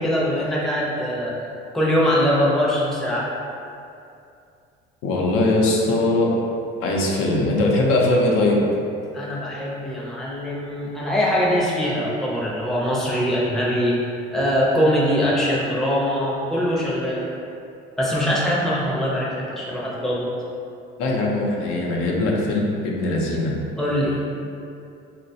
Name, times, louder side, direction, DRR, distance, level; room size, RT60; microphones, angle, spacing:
voice 1, 0.0-1.3 1.7-3.3 9.1-17.2 18.0-20.3 23.8-24.2, equal, ahead, -6 dB, 0.5 m, -22 dB
voice 2, 5.0-6.3 6.8-8.6 21.0-23.5, left 2 dB, 90° left, -2 dB, 0.6 m, -20 dB
4.0 x 2.1 x 2.6 m, 2.5 s
cardioid pair, 145°, 21 cm